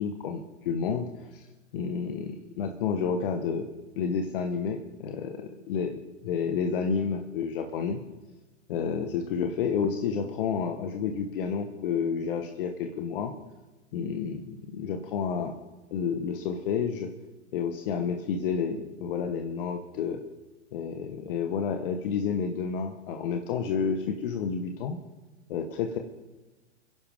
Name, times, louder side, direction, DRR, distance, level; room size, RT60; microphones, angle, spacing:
voice 1, 0.0-1.4 1.7-3.7 4.0-8.0 8.7-13.3 13.9-15.6 15.9-17.1 17.5-20.2 20.7-25.0 25.5-26.0, left 6 dB, 50° left, 5 dB, 1.3 m, -30 dB
24.5 x 11.0 x 3.5 m, 1.1 s
figure-of-eight pair, 115°, 35 cm